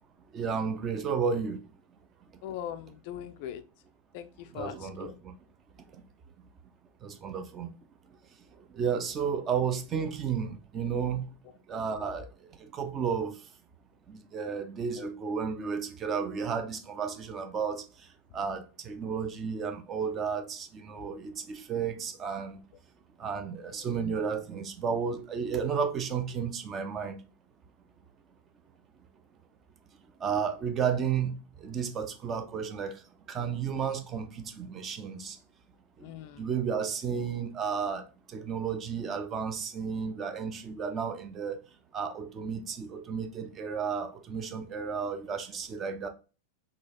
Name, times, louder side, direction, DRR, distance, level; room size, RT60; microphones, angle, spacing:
voice 1, 0.3-1.6 4.5-5.3 7.0-7.7 8.7-11.3 11.7-12.3 12.7-13.3 14.1-17.8 18.3-22.6 23.2-27.2 30.2-31.4 31.6-32.9 33.3-35.4 36.4-41.6 41.9-46.1, right 6 dB, 25° right, 0.5 m, -32 dB
voice 2, 2.4-3.6 4.1-5.2 12.2-12.3 15.0-15.1 36.0-36.4, left 10 dB, 45° left, 0.3 m, -40 dB
3.8 x 2.4 x 2.8 m
figure-of-eight pair, 90°, 0 cm